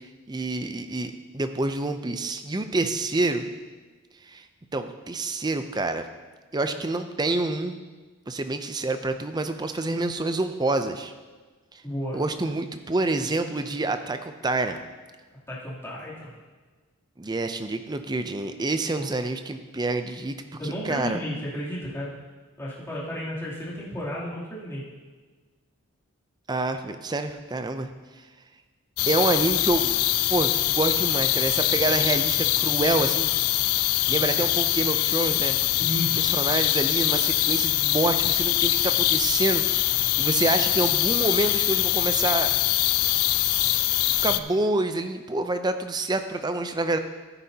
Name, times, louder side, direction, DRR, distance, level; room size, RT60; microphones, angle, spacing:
voice 1, 0.3-3.5 4.3-4.4 4.7-6.1 6.5-7.8 8.3-11.1 12.1-14.8 17.2-21.2 26.5-27.9 29.1-30.0 30.3-33.3 34.1-35.6 36.2-42.5 43.6-43.8 44.2-47.0, right 2 dB, 20° right, 8 dB, 0.5 m, -27 dB
voice 2, 11.8-12.2 15.5-16.3 18.9-19.1 20.6-22.1 22.6-24.8 35.8-36.2, left 1 dB, 10° left, -8 dB, 3.0 m, -33 dB
sound 1, 29.0-44.4, left 14 dB, 85° left, 0.4 m, -23 dB
14.0 x 9.7 x 2.8 m, 1.4 s
head